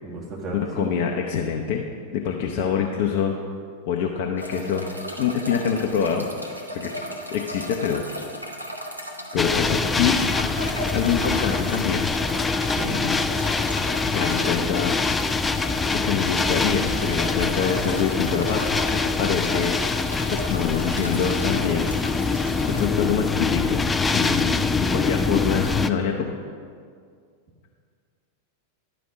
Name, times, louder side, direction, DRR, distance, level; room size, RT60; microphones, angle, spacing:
voice 1, 0.0-0.9 12.7-13.0, right 1 dB, 30° right, -2 dB, 1.9 m, -33 dB
voice 2, 0.5-1.8 2.1-3.4 3.9-4.9 5.2-6.3 6.7-6.9 7.3-8.4 9.3-10.2 10.5-10.6 10.9-12.1 14.1-15.0 15.9-18.6 18.9-19.8 20.3-21.9 22.7-26.3, left 7 dB, 45° left, 1 dB, 0.6 m, -25 dB
sound 1, 4.4-22.9, equal, 90° right, 0.9 m, -36 dB
sound 2, 9.4-25.9, left 4 dB, 15° left, 0.3 m, -24 dB
11.0 x 5.1 x 6.0 m, 2.1 s
figure-of-eight pair, 90°, 0 cm